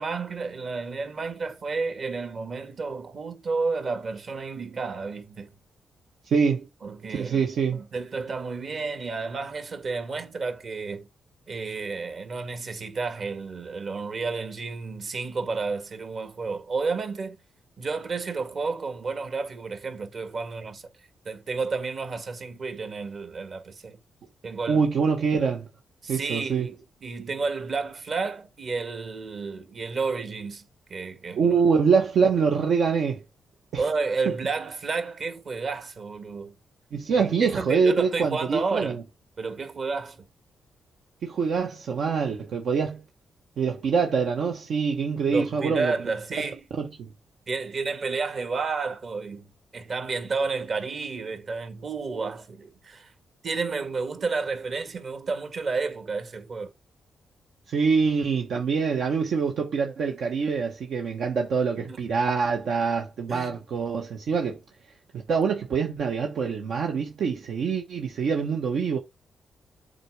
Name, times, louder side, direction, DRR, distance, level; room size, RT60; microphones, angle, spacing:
voice 1, 0.0-5.5 6.8-11.1 11.5-17.4 17.8-20.8 21.3-24.0 24.4-24.9 26.0-30.6 30.9-31.5 33.8-36.5 37.1-39.0 39.4-40.2 45.3-46.6 47.5-49.5 49.7-53.1 53.4-56.7 61.9-62.0 63.3-63.6, right 4 dB, 50° right, 1.9 m, -31 dB
voice 2, 6.3-6.7 7.1-7.8 24.7-25.7 26.1-26.7 31.4-33.2 33.7-33.9 36.9-39.0 41.2-43.0 43.6-45.9 46.4-46.5 46.8-47.1 57.7-64.6 65.3-69.0, right 5 dB, 70° right, 1.2 m, -25 dB
7.7 x 4.4 x 4.8 m
cardioid pair, 110°, 0 cm